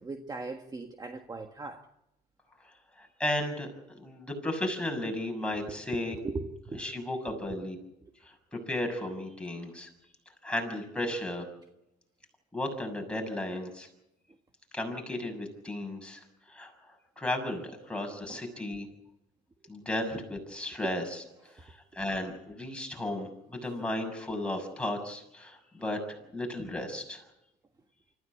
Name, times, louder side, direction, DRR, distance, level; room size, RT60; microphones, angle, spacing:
voice 1, 0.0-1.9 5.4-5.5 5.9-6.9 7.3-7.6 8.0-8.1 18.3-18.4 20.8-20.9 21.5-21.7, right 3 dB, 20° right, 1.6 m, -39 dB
voice 2, 3.0-6.1 6.8-7.8 8.2-8.3 8.7-9.9 10.4-11.4 12.5-13.9 14.7-16.7 17.2-18.9 19.7-21.0 21.6-27.3, left 1 dB, 5° left, 6.5 m, -34 dB
25.5 x 15.0 x 8.5 m
cardioid pair, 110°, 17 cm